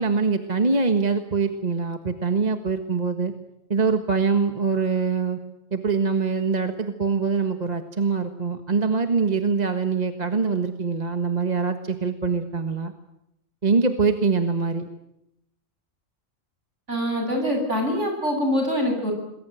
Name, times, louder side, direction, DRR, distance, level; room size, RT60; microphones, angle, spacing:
voice 1, 0.0-3.3 3.7-5.4 5.7-12.9 13.6-14.9, right 4 dB, 30° right, 7 dB, 1.6 m, -23 dB
voice 2, 16.9-19.1, equal, 60° right, 3 dB, 8.1 m, -24 dB
27.0 x 21.0 x 9.2 m, 0.85 s
omnidirectional pair, 1.4 m